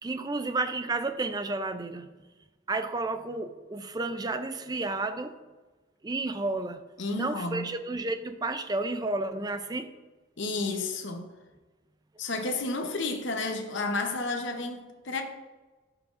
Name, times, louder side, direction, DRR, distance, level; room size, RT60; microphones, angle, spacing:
voice 1, 0.0-2.1 2.7-5.3 6.0-6.8 7.1-9.9, right 2 dB, 20° right, 0.4 m, -31 dB
voice 2, 7.0-7.8 10.4-11.3 12.2-15.2, left 3 dB, 60° left, 0.8 m, -31 dB
11.0 x 5.9 x 2.5 m
head